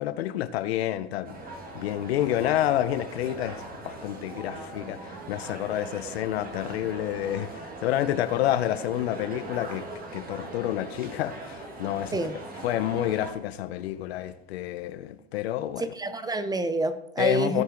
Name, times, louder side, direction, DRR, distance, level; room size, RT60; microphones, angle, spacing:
voice 1, 0.0-9.8 10.1-12.2 12.6-15.9 17.2-17.6, left 12 dB, 80° left, 0.8 m, -29 dB
sound 1, 1.2-13.3, right 2 dB, 30° right, 2.1 m, -40 dB
voice 2, 15.8-17.6, right 2 dB, 10° right, 0.7 m, -28 dB
16.0 x 5.6 x 3.8 m
supercardioid pair, 110°, 31 cm